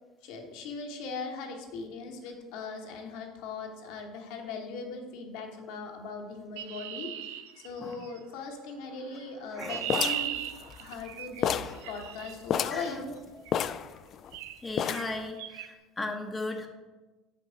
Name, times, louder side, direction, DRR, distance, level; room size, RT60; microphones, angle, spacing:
voice 1, 0.2-7.1 7.6-10.3 10.8-11.5 11.9-13.1, left 4 dB, 70° left, 2 dB, 1.1 m, -39 dB
Chirp tweet, 6.6-8.2 9.2-12.4 13.5-13.7 14.3-14.6 14.8-15.1 15.4-15.7, right 11 dB, 80° right, 0.4 m, -37 dB
voice 2, 9.5-9.9 11.6-11.9 12.7-13.0 13.3-13.4 14.6-16.7, left 2 dB, 15° left, 3 dB, 0.9 m, -37 dB
sound 1, 9.9-11.1 11.4-11.8 12.1-12.2 12.5-12.9 13.5-14.4 14.8-15.2, left 9 dB, 50° left, 0.3 m, -30 dB
5.3 x 5.3 x 5.0 m, 1.2 s
hypercardioid pair, 80°, 0 cm